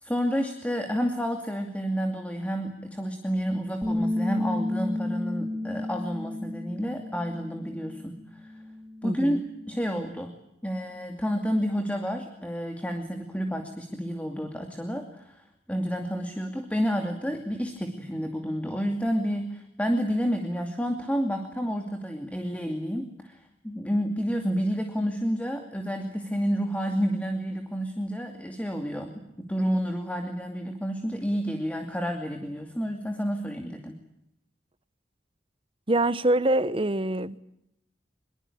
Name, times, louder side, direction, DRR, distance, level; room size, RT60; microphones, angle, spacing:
voice 1, 0.0-8.5 9.0-10.3 10.6-34.0, equal, 10° left, 4 dB, 2.5 m, -30 dB
Bass guitar, 3.8-8.1 8.4-10.1, left 1 dB, 10° right, 2.2 m, -32 dB
voice 2, 9.0-9.4 35.9-37.4, right 1 dB, 30° right, 15 dB, 1.0 m, -25 dB
24.5 x 23.0 x 8.7 m, 0.80 s
head